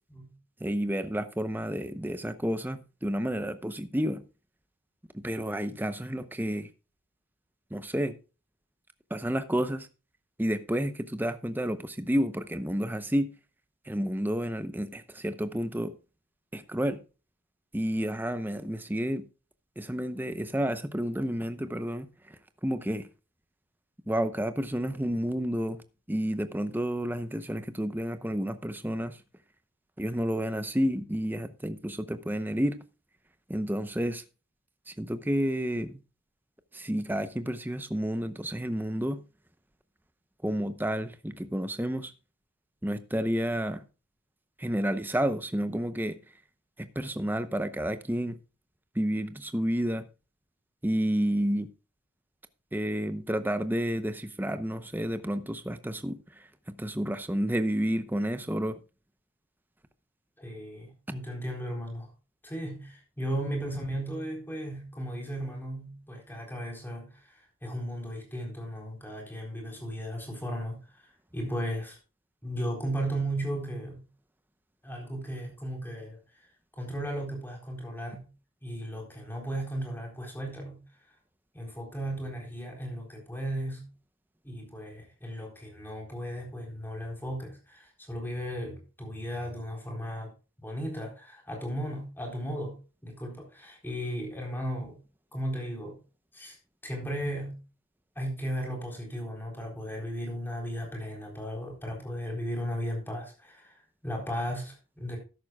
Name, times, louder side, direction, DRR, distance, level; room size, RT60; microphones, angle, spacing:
voice 1, 0.6-4.2 5.1-6.7 7.7-8.2 9.1-9.9 10.4-13.3 13.9-15.9 16.5-17.0 17.7-19.2 19.8-22.4 22.6-23.1 24.1-25.8 26.1-29.2 30.0-32.8 33.5-34.2 34.9-36.0 36.7-39.2 40.4-42.1 42.8-43.8 44.6-46.2 46.8-48.4 48.9-50.0 50.8-51.7 52.7-56.5 56.8-58.8, equal, 10° right, 0.7 m, -30 dB
voice 2, 60.4-62.1 62.4-72.0 72.4-74.1 74.8-76.5 76.7-78.3 78.6-80.9 81.5-83.9 84.4-90.3 90.6-95.0 95.3-96.0 96.3-96.6 96.8-97.6 98.2-105.2, equal, 10° left, 4.0 m, -36 dB
13.5 x 11.0 x 2.3 m
head